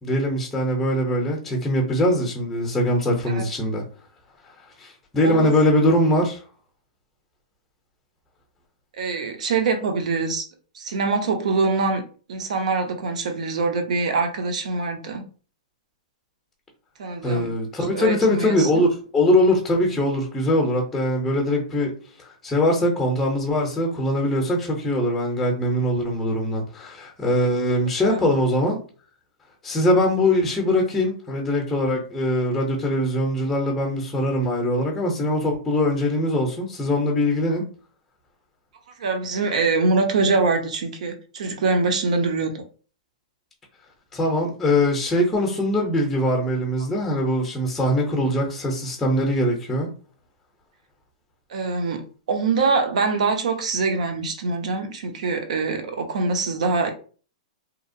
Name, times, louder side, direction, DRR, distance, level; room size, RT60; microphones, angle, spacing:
voice 1, 0.0-3.8 4.8-6.4 17.2-18.9 19.1-21.9 22.2-28.8 29.6-37.6 44.1-49.9, left 1 dB, 5° left, 0.6 m, -22 dB
voice 2, 8.9-10.5 10.7-12.0 12.3-15.2 17.0-17.5 17.9-18.8 28.0-28.2 39.0-42.6 51.5-56.9, right 4 dB, 70° right, 0.6 m, -24 dB
2.8 x 2.0 x 2.5 m
hypercardioid pair, 150°, 4 cm